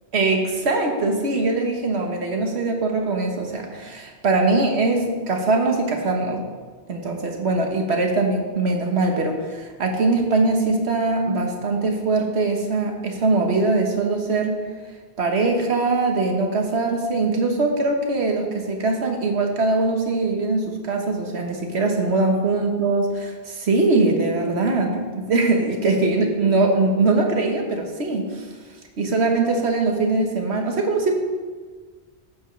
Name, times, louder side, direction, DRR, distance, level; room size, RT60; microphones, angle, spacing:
voice 1, 0.1-6.4 6.9-14.6 15.2-28.5 29.0-31.1, right 3 dB, 75° right, 2 dB, 1.5 m, -22 dB
11.0 x 8.1 x 3.3 m, 1.5 s
omnidirectional pair, 1.1 m